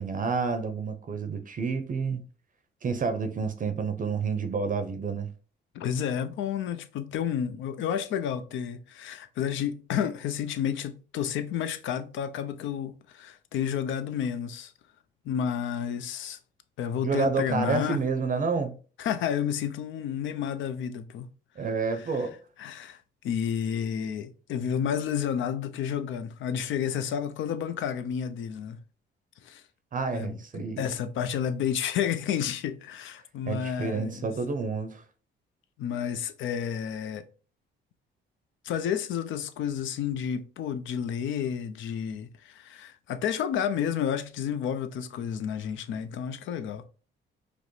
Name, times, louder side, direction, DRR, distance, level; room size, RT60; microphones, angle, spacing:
voice 1, 0.0-2.2 2.8-5.3 17.0-18.8 21.6-22.3 29.9-30.9 33.5-35.0, right 4 dB, 40° right, 0.5 m, -29 dB
voice 2, 5.7-14.7 15.2-16.4 16.8-18.0 19.0-21.3 22.6-23.0 23.2-28.8 29.4-29.6 30.1-34.3 35.8-37.3 38.6-46.8, left 8 dB, 75° left, 0.5 m, -31 dB
5.0 x 2.0 x 3.0 m
cardioid pair, 90°, 20 cm